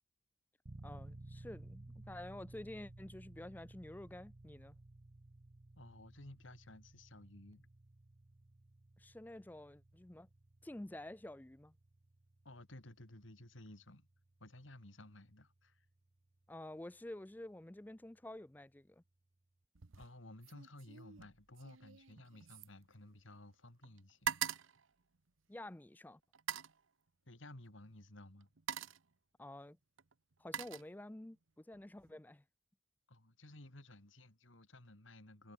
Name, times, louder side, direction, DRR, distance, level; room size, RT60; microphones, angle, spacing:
sound 1, 0.7-17.4, right 2 dB, 35° right, 0.7 m, -58 dB
voice 1, 0.8-4.8 9.0-10.3 10.6-11.7 16.5-19.0 25.5-26.2 29.4-29.8 30.4-32.4, left 1 dB, 10° left, 0.3 m, -50 dB
voice 2, 5.8-7.7 12.4-14.1 14.4-15.8 20.0-24.3 27.3-28.5 33.1-35.5, left 1 dB, 80° left, 3.1 m, -56 dB
sound 2, 19.7-20.1 20.4-23.5 23.8-25.7 26.3-26.8 27.8-28.0 28.4-29.1 30.0-31.4 31.7-32.1, right 8 dB, 85° right, 1.0 m, -44 dB
head